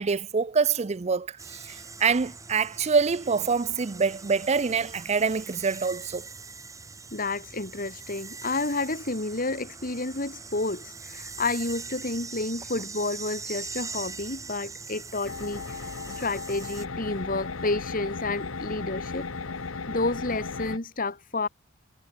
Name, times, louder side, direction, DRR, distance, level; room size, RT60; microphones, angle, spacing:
voice 1, 0.0-6.3, right 5 dB, 35° right, 0.5 m, -26 dB
sound 1, 1.4-16.8, right 4 dB, 15° right, 1.5 m, -42 dB
voice 2, 7.1-15.9 16.2-19.3 19.6-21.5, left 2 dB, 45° left, 2.3 m, -30 dB
sound 2, 15.2-20.8, left 4 dB, 85° left, 1.1 m, -36 dB
head